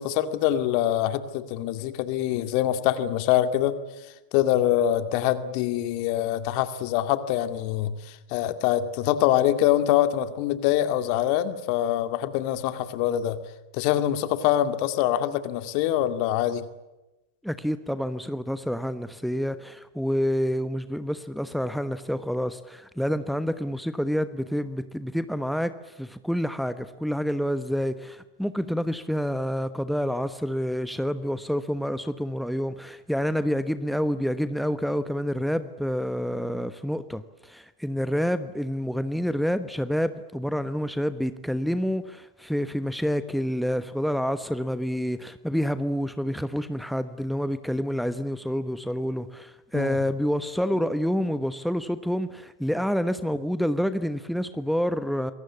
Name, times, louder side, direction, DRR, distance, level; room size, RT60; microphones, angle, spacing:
voice 1, 0.0-3.8 4.3-13.4 13.7-16.7 49.7-50.0, left 12 dB, 45° left, 2.2 m, -24 dB
voice 2, 17.4-55.3, equal, ahead, 1.2 m, -28 dB
27.5 x 22.0 x 8.5 m
figure-of-eight pair, 90°, 0 cm